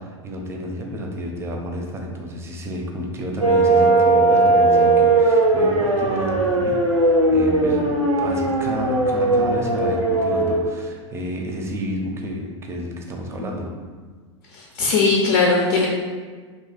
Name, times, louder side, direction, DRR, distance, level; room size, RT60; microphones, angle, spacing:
voice 1, 0.0-6.8 7.0-13.7, equal, 15° right, 1 dB, 0.6 m, -30 dB
sound 1, 3.4-10.6, right 2 dB, 85° right, 0.6 m, -18 dB
voice 2, 14.5-15.9, left 4 dB, 45° left, -1 dB, 0.6 m, -19 dB
2.8 x 2.5 x 4.1 m, 1.5 s
figure-of-eight pair, 90°, 15 cm